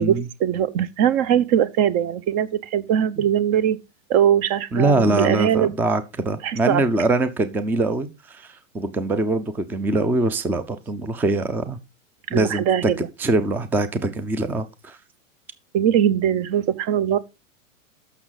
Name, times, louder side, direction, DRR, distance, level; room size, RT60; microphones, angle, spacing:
voice 1, 0.0-3.8 4.1-5.7 6.4-6.8 12.3-13.0 15.7-17.2, right 10 dB, 40° right, 0.9 m, -21 dB
voice 2, 4.7-11.8 12.3-12.9 13.2-15.0, right 2 dB, 5° right, 0.4 m, -23 dB
12.5 x 6.3 x 4.0 m
hypercardioid pair, 135°, 41 cm